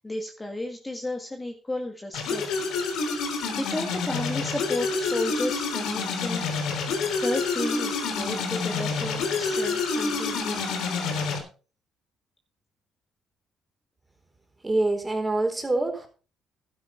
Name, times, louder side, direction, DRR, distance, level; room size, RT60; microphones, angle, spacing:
voice 1, 0.0-2.4 2.8-3.2 3.6-6.4 7.1-11.0, left 1 dB, 15° left, 3 dB, 1.9 m, -33 dB
sound 1, 2.1-11.4, left 4 dB, 80° left, 3.4 m, -28 dB
voice 2, 14.6-16.1, right 2 dB, 15° right, 4 dB, 3.9 m, -25 dB
12.0 x 10.0 x 4.5 m, 0.37 s
cardioid pair, 105°, 0 cm